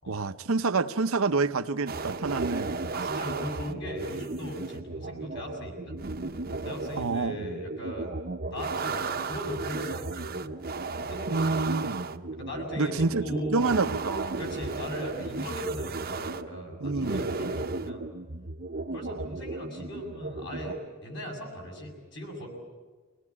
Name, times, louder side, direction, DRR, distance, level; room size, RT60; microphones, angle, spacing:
voice 1, 0.1-2.8 7.0-7.5 11.3-12.0 12.8-14.4 16.8-17.2, right 3 dB, 75° right, 10 dB, 0.8 m, -28 dB
sound 1, 1.9-20.7, right 3 dB, 45° right, 0.8 m, -35 dB
voice 2, 2.9-6.0 6.6-8.2 8.5-10.5 11.0-11.9 12.3-13.8 14.4-18.0 18.9-22.5, equal, 55° left, 1 dB, 6.9 m, -38 dB
24.5 x 18.5 x 9.8 m, 1.4 s
head